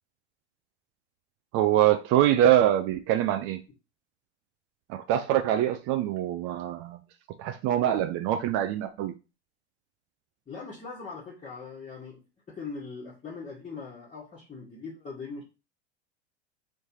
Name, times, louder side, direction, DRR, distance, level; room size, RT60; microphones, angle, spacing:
voice 1, 1.5-3.6 4.9-7.0 7.4-9.1, right 12 dB, 40° right, 0.5 m, -24 dB
voice 2, 10.5-15.4, left 4 dB, 20° left, 1.4 m, -41 dB
4.4 x 3.2 x 2.8 m
figure-of-eight pair, 80°, 34 cm